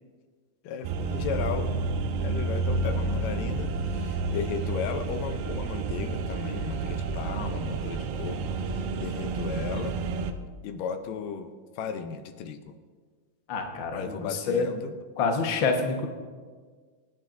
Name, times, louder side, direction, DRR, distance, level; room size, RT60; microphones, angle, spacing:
voice 1, 0.6-1.7 2.2-10.0 10.6-12.7 13.9-14.9, left 6 dB, 80° left, 7 dB, 2.3 m, -35 dB
sound 1, 0.8-10.3, right 3 dB, 80° right, 2.3 m, -30 dB
voice 2, 13.5-14.7 15.2-16.1, left 4 dB, 55° left, 2 dB, 1.3 m, -27 dB
25.5 x 10.0 x 2.6 m, 1.5 s
omnidirectional pair, 3.9 m